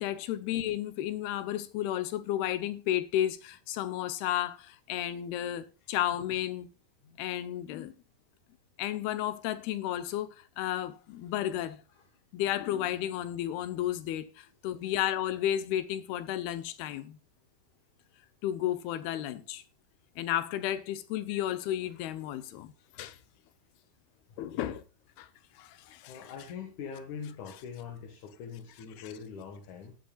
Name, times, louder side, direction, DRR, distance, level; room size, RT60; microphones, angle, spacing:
voice 1, 0.0-6.7 7.2-7.9 8.8-11.8 12.3-17.2 18.4-19.6 20.2-23.2 24.4-24.8 25.2-25.3 25.6-26.3 29.0-29.1, left 12 dB, 85° left, 2.9 m, -33 dB
voice 2, 24.3-24.7 26.1-30.0, left 6 dB, 60° left, 2.6 m, -43 dB
17.5 x 9.1 x 2.4 m
omnidirectional pair, 4.4 m